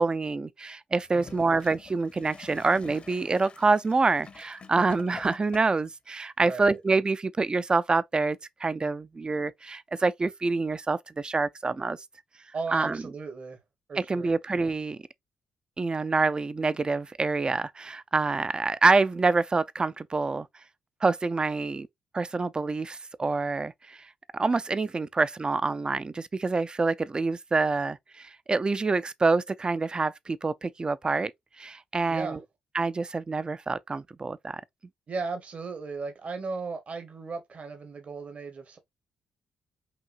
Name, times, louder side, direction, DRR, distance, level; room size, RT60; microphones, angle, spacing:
voice 1, 0.0-12.0 12.7-13.0 14.0-15.0 15.8-20.5 21.0-21.9 22.1-31.3 31.6-32.4 32.7-34.6, right 3 dB, 30° right, 0.5 m, -26 dB
Gurgling / Toilet flush, 1.0-5.9 6.7-6.8, left 4 dB, 45° left, 0.9 m, -47 dB
voice 2, 1.1-1.6 6.4-6.8 12.5-13.6 13.9-14.4 32.1-32.4 35.1-38.8, right 4 dB, 50° right, 1.2 m, -36 dB
5.7 x 2.7 x 2.4 m
hypercardioid pair, 45°, 3 cm